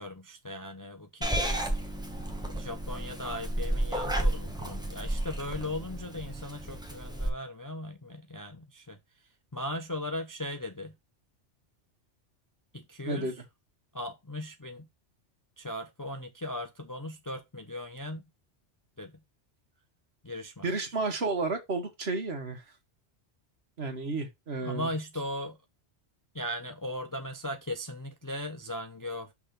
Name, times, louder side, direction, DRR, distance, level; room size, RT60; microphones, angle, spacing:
voice 1, 0.0-1.9 2.2-11.0 12.7-13.4 13.9-14.9 15.6-18.2 19.0-19.2 20.2-21.0 24.6-25.6 26.3-29.3, left 1 dB, 25° left, 0.4 m, -38 dB
Purr / Meow, 1.2-7.3, right 1 dB, 5° right, 0.9 m, -32 dB
voice 2, 20.6-22.6 23.8-24.9, right 3 dB, 60° right, 1.7 m, -32 dB
6.0 x 3.5 x 5.1 m
omnidirectional pair, 1.2 m